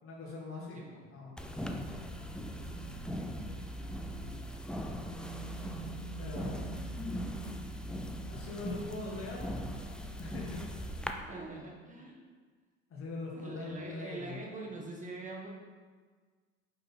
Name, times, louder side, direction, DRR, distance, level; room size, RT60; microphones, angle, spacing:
voice 1, 0.0-0.8 1.1-1.3 6.2-6.8 8.3-9.4 10.2-10.6 12.9-14.4, left 3 dB, 35° left, -5 dB, 2.0 m, -42 dB
sound 1, 1.4-11.1, equal, ahead, 0.4 m, -39 dB
voice 2, 11.1-12.1 13.4-15.5, right 2 dB, 20° right, -1 dB, 1.6 m, -44 dB
5.7 x 5.1 x 4.4 m, 1.5 s
hypercardioid pair, 75°, 36 cm